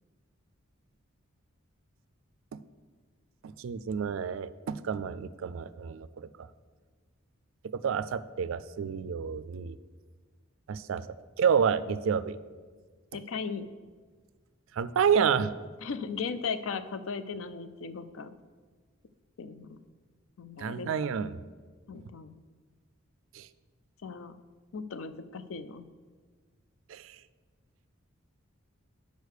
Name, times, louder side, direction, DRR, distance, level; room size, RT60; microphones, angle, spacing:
voice 1, 3.4-6.5 7.7-9.8 10.7-11.1 11.4-12.4 14.7-15.5 20.6-21.4 23.3-23.5 26.9-27.2, right 7 dB, 70° right, 15 dB, 0.3 m, -29 dB
voice 2, 13.1-13.7 15.8-18.3 19.4-19.8 20.4-20.9 21.9-22.4 24.0-24.3 24.7-25.9, left 5 dB, 70° left, 12 dB, 0.4 m, -37 dB
6.5 x 5.2 x 6.4 m, 1.5 s
head